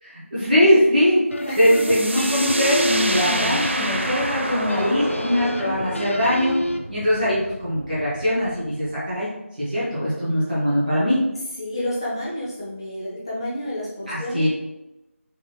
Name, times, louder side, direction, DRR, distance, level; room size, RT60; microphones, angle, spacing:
voice 1, 0.0-1.2 1.6-6.5 6.9-9.3 9.6-11.2 14.1-14.5, equal, ahead, -27 dB, 0.4 m, -21 dB
sound 1, 1.3-6.8, left 1 dB, 65° left, 0.4 m, -29 dB
voice 2, 1.4-1.9 4.5-5.1 11.6-14.5, left 1 dB, 20° left, -7 dB, 0.8 m, -30 dB
sound 2, 1.5-9.1, right 1 dB, 55° right, 0.5 m, -29 dB
3.7 x 3.1 x 2.9 m, 0.97 s
figure-of-eight pair, 170°, 8 cm